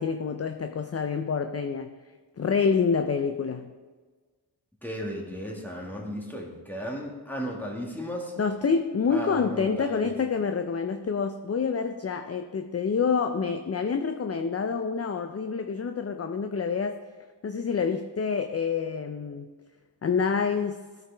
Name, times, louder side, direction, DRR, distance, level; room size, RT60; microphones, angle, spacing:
voice 1, 0.0-1.9 2.4-3.7 8.4-17.0 17.4-19.5 20.0-20.8, left 5 dB, 35° left, 7 dB, 0.4 m, -27 dB
voice 2, 4.8-8.3 9.1-10.1, equal, 5° left, -2 dB, 1.7 m, -35 dB
12.5 x 4.7 x 3.4 m, 1.4 s
wide cardioid pair, 40°, 43 cm